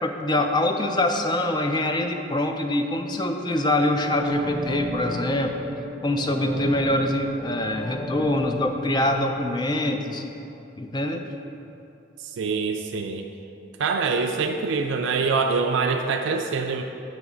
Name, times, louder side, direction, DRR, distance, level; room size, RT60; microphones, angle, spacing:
voice 1, 0.0-5.7 6.0-10.2 10.8-11.2, left 1 dB, 25° left, 5 dB, 0.4 m, -24 dB
sound 1, 3.8-10.7 11.0-11.1, left 1 dB, 5° right, 0.9 m, -35 dB
voice 2, 12.2-13.3 13.8-16.8, right 4 dB, 80° right, 4 dB, 0.3 m, -25 dB
7.6 x 3.1 x 6.0 m, 2.8 s
head